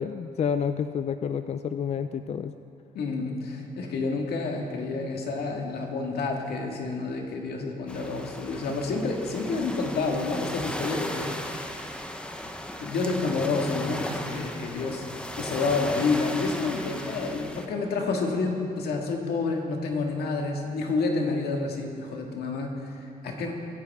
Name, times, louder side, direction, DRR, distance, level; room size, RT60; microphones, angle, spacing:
voice 1, 0.0-2.5, left 7 dB, 45° left, 10 dB, 0.4 m, -29 dB
voice 2, 2.9-11.7 12.8-23.5, left 3 dB, 90° left, 1 dB, 1.8 m, -29 dB
sound 1, 7.9-17.7, left 1 dB, 5° left, 0.9 m, -36 dB
23.5 x 9.8 x 3.5 m, 2.7 s
cardioid pair, 110°, 16 cm